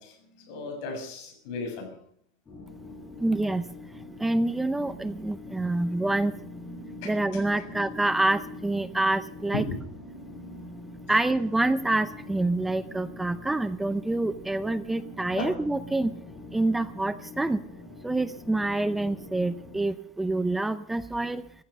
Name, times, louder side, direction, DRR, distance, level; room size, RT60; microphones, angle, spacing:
voice 1, 0.0-2.0 7.0-7.7 9.5-9.8 15.4-15.5, left 4 dB, 65° left, 4 dB, 7.0 m, -36 dB
sound 1, 2.5-19.9, left 1 dB, 20° left, 5.2 m, -44 dB
voice 2, 3.2-3.7 4.2-6.3 7.0-9.6 11.1-16.1 16.5-17.6 18.0-21.4, right 2 dB, 5° right, 12 dB, 0.6 m, -27 dB
15.0 x 14.0 x 6.6 m, 0.68 s
supercardioid pair, 140°, 3 cm